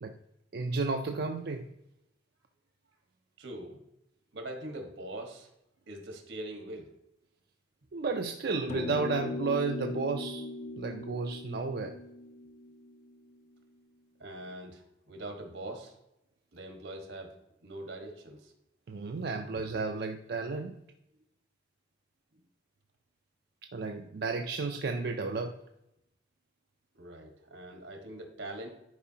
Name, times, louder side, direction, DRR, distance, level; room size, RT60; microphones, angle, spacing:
voice 1, 0.5-1.6 7.9-10.5 10.8-12.0 18.9-20.7 23.7-25.5, right 4 dB, 55° right, 4 dB, 0.4 m, -32 dB
voice 2, 3.4-3.8 4.3-5.5 5.9-6.9 14.2-15.9 16.5-17.3 17.6-18.5 26.9-28.7, right 1 dB, 80° right, 3 dB, 1.4 m, -42 dB
sound 1, 8.7-13.4, left 2 dB, 40° left, 0.4 m, -39 dB
10.5 x 4.8 x 2.8 m, 0.84 s
head